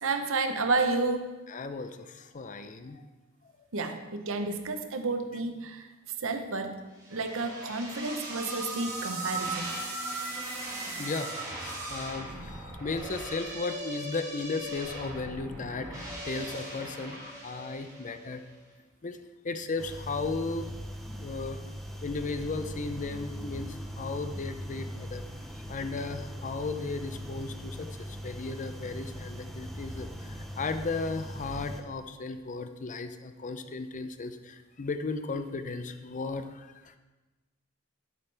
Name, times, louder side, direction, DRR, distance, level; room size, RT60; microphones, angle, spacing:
voice 1, 0.0-1.3 3.7-5.9 6.2-6.8 7.1-9.7, right 3 dB, 65° right, 6 dB, 0.9 m, -31 dB
voice 2, 1.5-3.0 11.0-18.4 19.0-19.2 19.4-20.7 21.2-21.6 22.0-25.2 25.7-27.9 28.2-37.0, left 3 dB, 35° left, 9 dB, 0.5 m, -35 dB
sound 1, 7.0-18.3, right 2 dB, 15° right, 3.4 m, -38 dB
sound 2, 19.8-31.8, equal, ahead, 0.8 m, -40 dB
11.0 x 8.5 x 3.4 m, 1.2 s
head